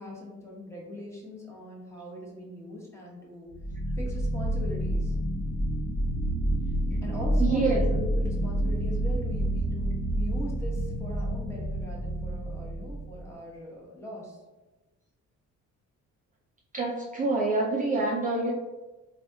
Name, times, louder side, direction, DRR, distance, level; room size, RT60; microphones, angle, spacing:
voice 1, 0.0-3.5 4.0-5.1 7.0-14.4, left 1 dB, 10° left, -4 dB, 1.0 m, -41 dB
sound 1, 3.5-13.3, right 1 dB, 45° left, 1.3 m, -28 dB
voice 2, 7.4-7.8 16.7-18.5, right 3 dB, 25° right, -2 dB, 0.4 m, -26 dB
3.3 x 2.3 x 2.6 m, 1.1 s
cardioid pair, 90°, 30 cm